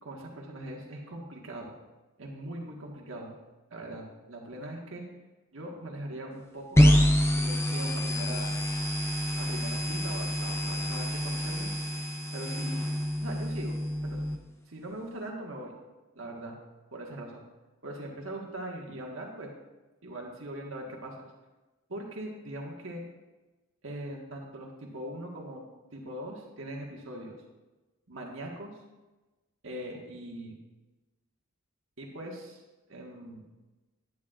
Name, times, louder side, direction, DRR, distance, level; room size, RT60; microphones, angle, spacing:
voice 1, 0.0-1.7 2.2-3.3 3.7-5.0 5.5-6.8 7.3-8.5 9.4-11.7 12.3-12.8 13.2-13.7 14.0-14.2 14.7-15.7 16.1-16.5 16.9-17.4 17.8-19.5 20.0-21.3 21.9-23.0 23.8-25.6 25.9-27.4 28.1-28.7 29.6-30.5 32.0-32.6 32.9-33.5, right 1 dB, 65° right, 0 dB, 1.6 m, -41 dB
sound 1, 6.8-14.4, equal, 10° left, 0.6 m, -27 dB
10.5 x 9.3 x 2.5 m, 1.1 s
head